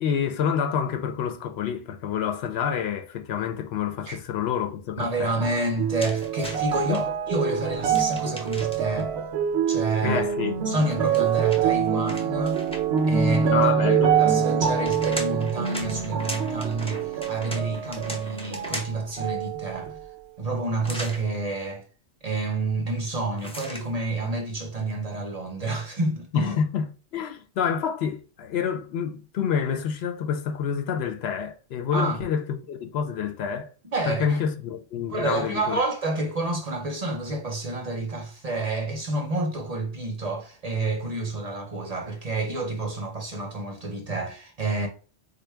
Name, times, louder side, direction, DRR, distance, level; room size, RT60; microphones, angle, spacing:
voice 1, 0.0-5.3 6.9-7.0 10.0-10.6 13.5-14.2 26.3-33.7 34.1-35.8, left 7 dB, 75° left, 0.8 m, -28 dB
voice 2, 5.0-9.1 9.7-10.2 10.7-12.6 13.1-20.0 20.4-21.8 22.2-26.5 31.9-32.2 33.9-34.4 35.1-44.9, right 2 dB, 45° right, 0.6 m, -29 dB
sound 1, 5.4-18.8 19.2-20.1 20.8-20.9, right 7 dB, 75° right, 0.8 m, -25 dB
sound 2, 6.0-7.0 7.9-9.0 10.8-13.1 14.5-19.1 20.8-21.2 23.4-23.9, equal, 10° left, 0.5 m, -38 dB
3.8 x 2.2 x 3.3 m
omnidirectional pair, 1.1 m